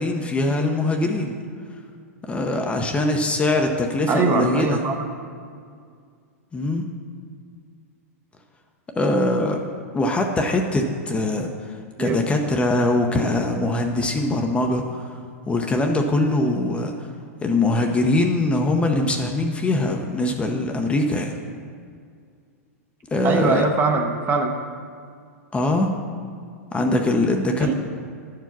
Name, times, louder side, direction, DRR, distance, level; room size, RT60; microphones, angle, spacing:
voice 1, 0.0-1.4 2.2-4.9 6.5-6.9 9.0-9.6 9.9-11.5 12.0-15.1 15.5-16.9 17.4-21.3 23.1-23.7 25.5-25.9 26.7-27.7, left 2 dB, 15° left, 3 dB, 0.7 m, -22 dB
voice 2, 4.1-5.0 12.0-12.2 23.2-24.6 27.6-27.7, right 3 dB, 25° right, 4 dB, 0.8 m, -22 dB
10.0 x 4.7 x 6.0 m, 2.2 s
hypercardioid pair, 120°, 8 cm